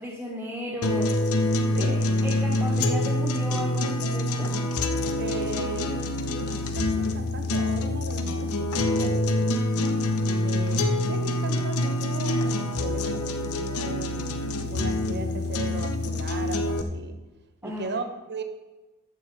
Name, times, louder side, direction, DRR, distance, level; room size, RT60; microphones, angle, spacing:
voice 1, 0.0-2.0 2.2-4.5 17.6-17.9, equal, 5° right, -6 dB, 1.7 m, -35 dB
sound 1, 0.8-16.8, left 1 dB, 70° left, 0.8 m, -26 dB
voice 2, 5.2-5.9 6.2-9.5 10.4-14.3 14.7-17.2 17.6-18.4, right 3 dB, 50° right, 7 dB, 1.1 m, -37 dB
13.5 x 6.3 x 4.9 m, 1.1 s
head